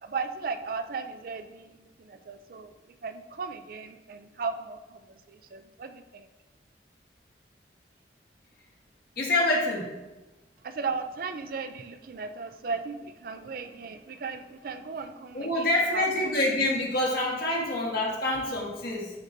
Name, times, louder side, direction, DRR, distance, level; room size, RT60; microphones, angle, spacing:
voice 1, 0.0-2.7 3.0-6.3 10.6-16.3 17.5-17.6, right 4 dB, 55° right, 9 dB, 0.4 m, -36 dB
voice 2, 9.2-9.8 15.3-19.1, left 1 dB, 55° left, -2 dB, 1.5 m, -26 dB
11.0 x 4.0 x 2.7 m, 1.1 s
head